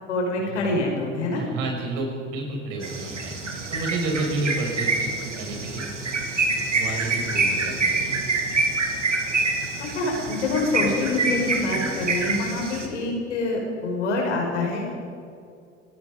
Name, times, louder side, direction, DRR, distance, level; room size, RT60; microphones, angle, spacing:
voice 1, 0.1-1.4 9.8-14.9, left 2 dB, 75° left, 0 dB, 5.6 m, -26 dB
voice 2, 1.3-5.8 6.7-8.1, right 2 dB, 60° right, 1 dB, 6.0 m, -30 dB
sound 1, 2.8-12.9, right 3 dB, 90° right, 2.1 m, -26 dB
30.0 x 18.0 x 5.2 m, 2.4 s
figure-of-eight pair, 60°, 35 cm